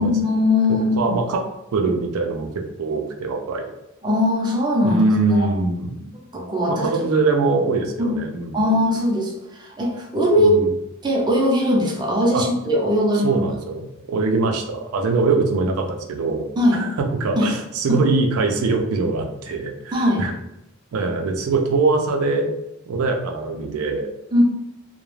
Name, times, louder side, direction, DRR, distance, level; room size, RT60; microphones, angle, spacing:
voice 1, 0.0-1.1 4.0-5.0 5.3-5.5 6.3-7.0 8.0-8.2 8.5-10.7 11.0-13.4 16.6-16.9 17.4-17.5 17.9-18.0 19.9-20.3 24.3-24.4, left 1 dB, 20° right, -2 dB, 0.5 m, -20 dB
voice 2, 0.7-1.4 1.7-2.5 2.8-3.7 4.8-6.0 6.7-8.6 10.4-10.7 12.3-12.4 13.2-16.5 16.7-20.3 20.9-22.5 22.9-24.1, right 3 dB, 85° right, 4 dB, 0.4 m, -22 dB
2.3 x 2.1 x 3.1 m, 0.85 s
head